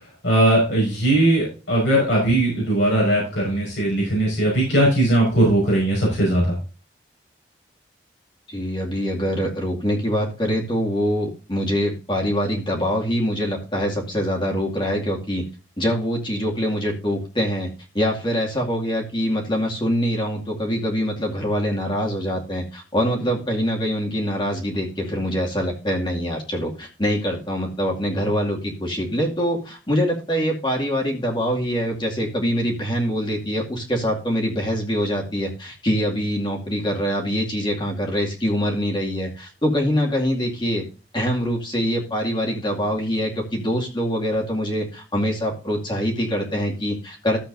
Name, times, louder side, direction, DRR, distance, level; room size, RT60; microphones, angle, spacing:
voice 1, 0.2-6.6, right 1 dB, 80° left, -4 dB, 5.7 m, -19 dB
voice 2, 8.5-15.4 15.8-17.7 17.9-40.8 41.1-47.4, equal, 25° left, -1 dB, 2.4 m, -24 dB
14.0 x 7.6 x 2.7 m, 0.33 s
head